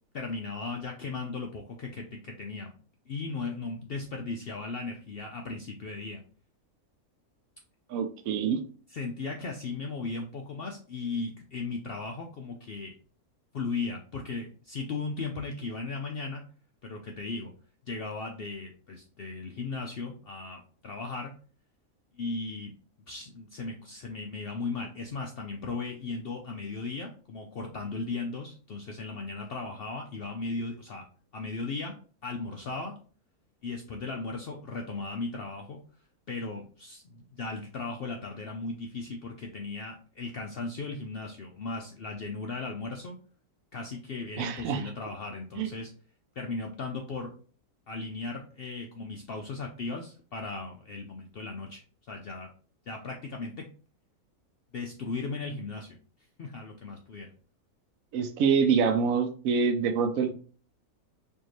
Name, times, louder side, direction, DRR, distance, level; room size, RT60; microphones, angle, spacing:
voice 1, 0.1-2.7 3.1-6.2 8.9-12.9 13.5-16.4 16.8-17.5 17.9-21.3 22.2-22.7 23.1-31.0 31.3-31.9 32.2-32.9 33.6-35.8 36.3-43.2 43.7-45.9 46.4-47.3 47.9-51.8 52.1-52.5 52.9-53.6 54.7-56.0 56.4-57.3, left 3 dB, 80° left, 2 dB, 0.5 m, -36 dB
voice 2, 7.9-8.6 44.4-44.8 45.6-45.7 58.1-60.3, right 6 dB, 70° right, 6 dB, 0.9 m, -26 dB
4.5 x 2.7 x 3.0 m, 0.41 s
omnidirectional pair, 1.6 m